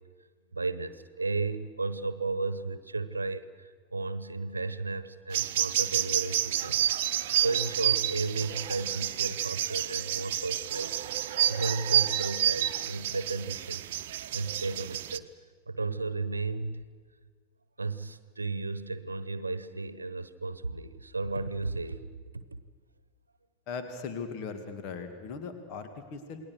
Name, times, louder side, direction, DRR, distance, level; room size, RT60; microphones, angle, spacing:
voice 1, 0.5-15.3 15.7-16.9 17.8-22.1 22.3-22.4, right 3 dB, 80° right, 15 dB, 1.0 m, -34 dB
sound 1, 5.3-15.2, right 12 dB, 55° right, 0.9 m, -29 dB
voice 2, 23.7-26.5, left 5 dB, 40° left, 7 dB, 2.3 m, -39 dB
28.5 x 20.5 x 6.4 m, 1.6 s
figure-of-eight pair, 90°, 0 cm